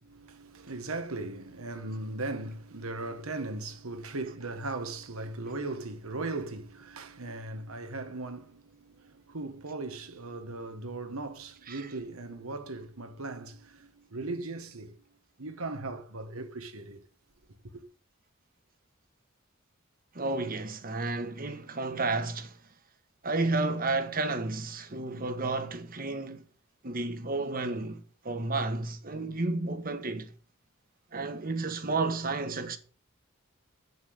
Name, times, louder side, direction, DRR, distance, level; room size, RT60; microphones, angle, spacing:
voice 1, 0.0-15.0 15.4-17.0 17.7-17.8, right 2 dB, 85° right, 1.4 m, -38 dB
voice 2, 20.1-22.6 23.2-26.4 26.8-30.3 31.1-32.8, right 3 dB, 40° right, 1.3 m, -32 dB
8.1 x 7.2 x 7.8 m
head